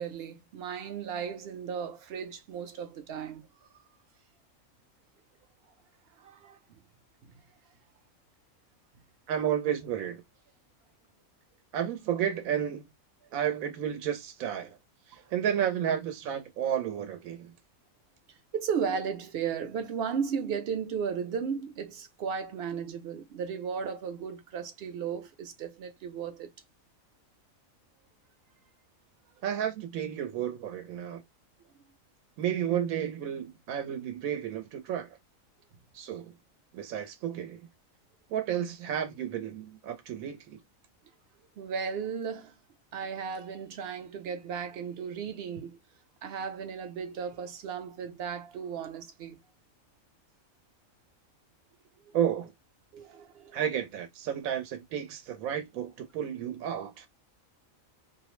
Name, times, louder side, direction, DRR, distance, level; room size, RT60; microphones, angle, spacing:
voice 1, 0.0-3.5 6.2-6.6 7.2-7.3 15.1-15.3 18.5-26.5 41.6-42.5 42.9-45.8 46.2-49.4 52.1-52.2 52.9-53.6, right 6 dB, 60° right, 0.7 m, -35 dB
voice 2, 9.3-10.2 11.7-12.9 13.3-14.8 15.1-17.5 29.4-31.2 32.4-35.2 35.9-36.3 36.7-37.6 38.3-40.6 52.1-52.5 53.5-57.1, right 9 dB, 90° right, 1.0 m, -32 dB
2.5 x 2.0 x 3.0 m
omnidirectional pair, 1.4 m